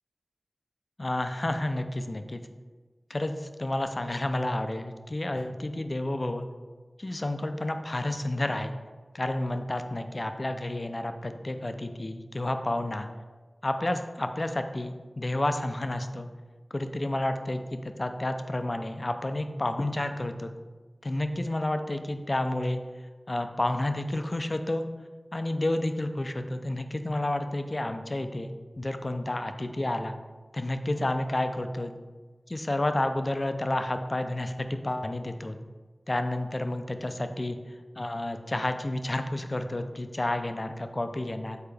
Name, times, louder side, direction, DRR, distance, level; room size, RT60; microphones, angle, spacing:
voice 1, 1.0-2.4 3.1-6.5 7.0-8.7 9.1-13.1 13.6-16.3 16.7-20.5 21.0-22.8 23.3-24.9 25.3-30.2 30.5-32.0 32.5-35.6 36.1-37.6 38.0-41.6, left 1 dB, 40° left, 7 dB, 0.4 m, -30 dB
6.7 x 4.3 x 3.4 m, 1.4 s
wide cardioid pair, 70°, 0 cm